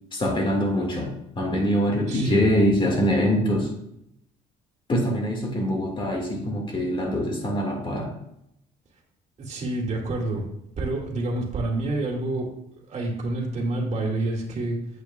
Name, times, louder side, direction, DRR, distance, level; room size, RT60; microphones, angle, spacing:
voice 1, 0.1-3.7 4.9-8.1, equal, 30° left, 1 dB, 1.8 m, -24 dB
voice 2, 2.1-2.4 9.4-10.4 10.8-12.5 12.9-14.8, right 2 dB, 40° right, -1 dB, 2.0 m, -28 dB
8.4 x 8.0 x 2.3 m, 0.78 s
cardioid pair, 110°, 17 cm